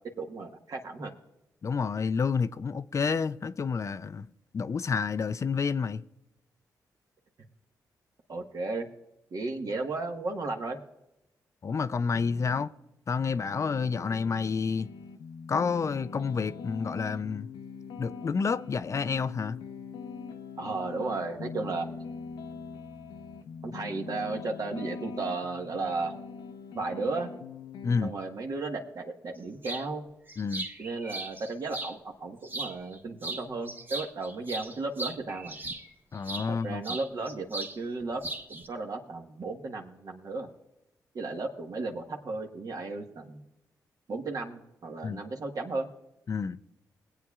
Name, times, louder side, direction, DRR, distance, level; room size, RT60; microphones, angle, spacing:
voice 1, 0.2-1.1 8.3-8.9 9.3-10.8 20.6-21.9 23.6-26.1 26.7-27.3 28.0-30.0 30.8-35.6 36.5-38.2 38.5-40.5 41.1-43.4 44.1-45.9, right 3 dB, 55° right, 1.4 m, -34 dB
voice 2, 1.6-4.3 4.5-6.0 11.6-12.7 13.1-14.9 15.5-17.5 18.0-19.6 27.8-28.1 30.4-30.7 36.1-36.8 45.0-45.2 46.3-46.6, left 5 dB, 40° left, 0.4 m, -29 dB
sound 1, 12.1-12.7 13.1-28.1, left 5 dB, 85° left, 0.7 m, -42 dB
sound 2, 29.6-29.9 30.3-31.9 32.4-33.0 33.2-36.5 36.8-37.8 38.0-38.7, right 2 dB, 25° right, 1.3 m, -38 dB
21.0 x 8.5 x 2.4 m
cardioid pair, 60°, 7 cm